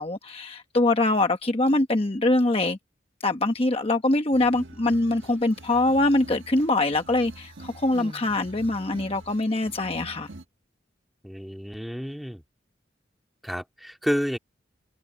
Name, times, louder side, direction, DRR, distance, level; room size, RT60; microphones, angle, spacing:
voice 1, 0.0-2.8 3.2-10.3, left 2 dB, 30° left, 1.0 m, -23 dB
sound 1, 4.3-10.4, right 2 dB, 85° right, 1.8 m, -46 dB
Human voice, 5.5-6.4 7.3-9.2 10.2-10.3, equal, 30° right, 2.6 m, -48 dB
voice 2, 11.2-12.4 13.4-14.4, equal, ahead, 2.7 m, -30 dB
head